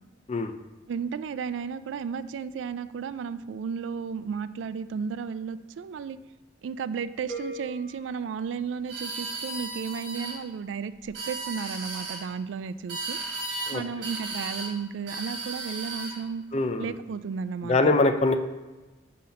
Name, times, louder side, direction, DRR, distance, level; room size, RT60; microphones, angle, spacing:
voice 1, 0.9-6.2 6.6-13.2 13.7-16.4 16.8-17.8, right 6 dB, 80° right, 14 dB, 0.3 m, -33 dB
sound 1, 7.3-9.4, right 1 dB, 10° left, 1.2 m, -42 dB
sound 2, 8.9-10.4 11.0-12.2 12.9-13.8 14.0-14.7 15.1-16.2, right 3 dB, 65° right, 1.8 m, -35 dB
voice 2, 16.5-17.0 17.6-18.4, left 2 dB, 35° left, 7 dB, 0.4 m, -23 dB
5.7 x 4.3 x 5.2 m, 1.2 s
head